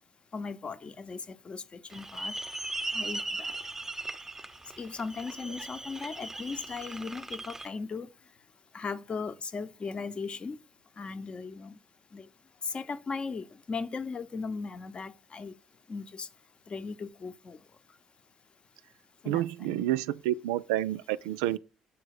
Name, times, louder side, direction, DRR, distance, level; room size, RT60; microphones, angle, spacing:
voice 1, 0.3-2.3 2.9-3.5 4.8-8.1 8.7-10.6 11.0-11.8 12.1-12.3 12.6-15.5 15.9-16.3 16.7-17.6 19.2-19.4, left 4 dB, 40° left, 0.8 m, -37 dB
sound 1, 1.9-7.7, right 2 dB, 15° right, 0.9 m, -38 dB
voice 2, 19.3-21.6, right 14 dB, 80° right, 0.3 m, -29 dB
7.1 x 4.8 x 4.8 m
hypercardioid pair, 50°, 3 cm